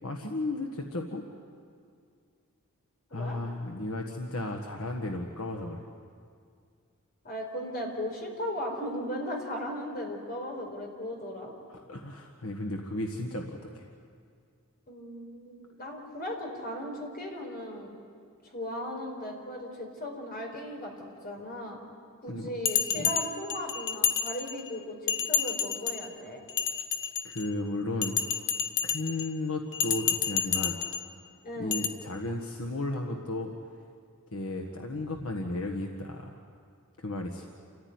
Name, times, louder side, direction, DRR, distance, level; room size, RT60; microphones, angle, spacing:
voice 1, 0.0-1.2 3.1-5.8 11.7-13.9 22.3-22.5 22.9-23.1 27.2-28.2 28.8-30.8 31.6-33.5 34.3-36.4 37.0-37.5, left 2 dB, 75° left, 2 dB, 1.6 m, -34 dB
voice 2, 7.2-11.5 14.9-17.9 18.5-20.9 21.2-21.8 22.2-26.4 31.4-31.8, equal, 45° left, 1 dB, 4.6 m, -37 dB
Bell, 22.7-24.7 25.1-26.1 26.5-27.5 28.0-29.3 29.7-31.1 31.7-31.9, left 8 dB, 60° left, 1.1 m, -29 dB
29.0 x 15.0 x 9.6 m, 2.3 s
head